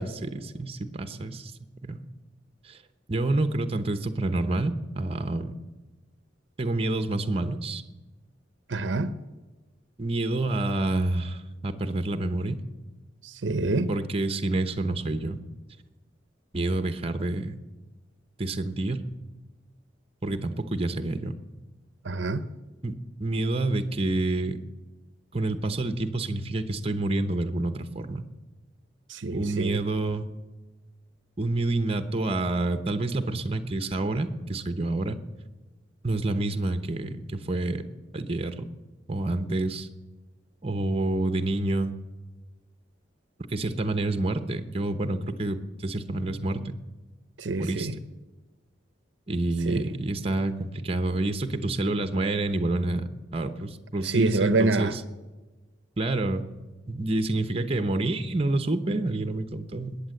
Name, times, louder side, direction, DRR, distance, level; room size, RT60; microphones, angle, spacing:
voice 1, 0.0-1.5 1.8-2.0 2.6-2.8 3.1-5.5 6.6-7.8 10.0-12.6 13.6-15.4 16.5-17.5 18.4-19.1 20.2-21.4 22.8-24.6 25.3-28.2 29.3-30.3 31.4-35.2 36.0-37.9 38.1-38.7 39.1-39.9 40.6-41.9 43.5-46.7 47.6-47.9 49.3-55.0 56.0-56.4 56.9-60.0, right 2 dB, 30° right, 1.0 m, -28 dB
voice 2, 8.7-9.1 13.2-13.9 22.0-22.4 29.1-29.8 47.4-48.0 49.7-49.8 54.0-54.9 58.9-59.0, right 2 dB, 80° right, 0.7 m, -26 dB
20.5 x 8.6 x 7.9 m
head